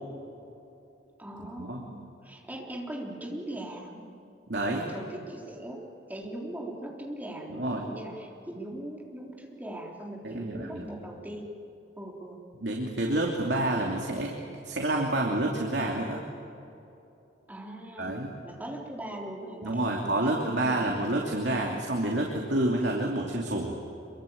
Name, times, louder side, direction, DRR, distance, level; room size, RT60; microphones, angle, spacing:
voice 1, 1.2-4.1 4.6-5.8 6.1-11.5 12.0-12.4 17.5-20.9, right 1 dB, 10° right, -1 dB, 3.7 m, -40 dB
voice 2, 4.5-4.9 7.5-7.9 10.2-10.9 12.6-14.3 14.6-16.2 18.0-18.3 19.6-23.8, right 1 dB, 65° right, 0 dB, 2.8 m, -28 dB
26.5 x 24.0 x 8.7 m, 2.8 s
head